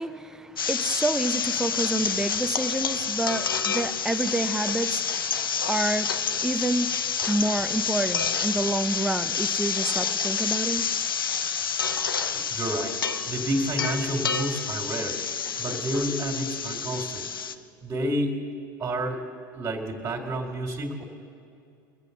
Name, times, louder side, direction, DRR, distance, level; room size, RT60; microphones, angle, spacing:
voice 1, 0.0-10.9, right 2 dB, 5° right, 9 dB, 0.7 m, -28 dB
sound 1, 0.6-17.5, left 6 dB, 90° left, 0.7 m, -28 dB
voice 2, 12.3-13.0 13.3-15.2 15.6-17.3 17.8-18.4 18.8-19.2 19.5-21.0, right 1 dB, 30° right, 0 dB, 2.3 m, -29 dB
22.0 x 8.3 x 6.6 m, 2.5 s
hypercardioid pair, 80°, 11 cm